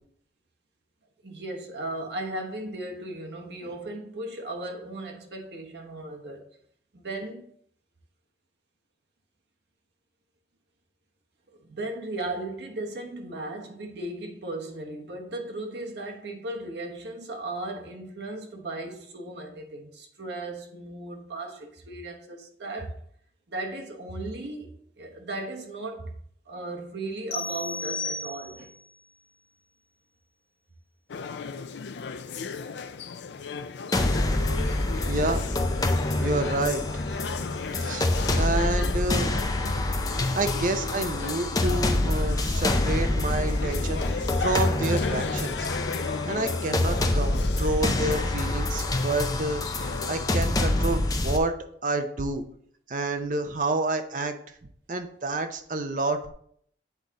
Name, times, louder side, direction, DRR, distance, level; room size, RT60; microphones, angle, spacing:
voice 1, 1.2-6.5 6.9-7.4 11.6-22.9 23.5-26.1 26.4-28.7, right 2 dB, 75° right, 1.1 m, -36 dB
sound 1, 27.3-28.8, left 3 dB, 55° left, 0.9 m, -34 dB
sound 2, 31.1-51.0, left 5 dB, 75° left, 0.4 m, -36 dB
sound 3, 33.9-51.4, left 2 dB, 20° left, 0.4 m, -26 dB
voice 2, 35.1-35.6 36.2-36.9 37.8-39.3 40.3-45.7 46.2-49.6 50.1-51.5 51.8-52.4 52.9-54.3 54.9-56.3, right 2 dB, 45° right, 0.6 m, -29 dB
8.1 x 4.0 x 3.6 m
head